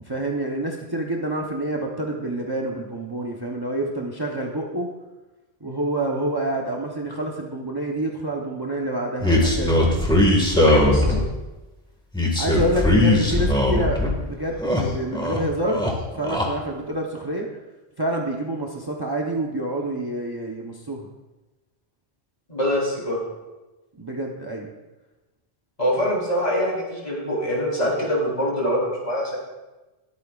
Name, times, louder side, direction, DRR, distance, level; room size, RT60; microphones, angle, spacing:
voice 1, 0.0-4.9 5.6-9.8 12.4-15.8 16.1-17.5 18.0-21.1 24.0-24.7, right 1 dB, 25° right, -1 dB, 1.0 m, -27 dB
sound 1, 9.2-11.4 12.1-14.1 14.5-15.4 15.7-16.5, left 1 dB, 5° left, 1.8 m, -20 dB
voice 2, 10.6-11.2 22.5-23.2 25.8-29.4, equal, 40° left, -4 dB, 4.0 m, -24 dB
21.0 x 8.6 x 2.5 m, 1.1 s
omnidirectional pair, 1.1 m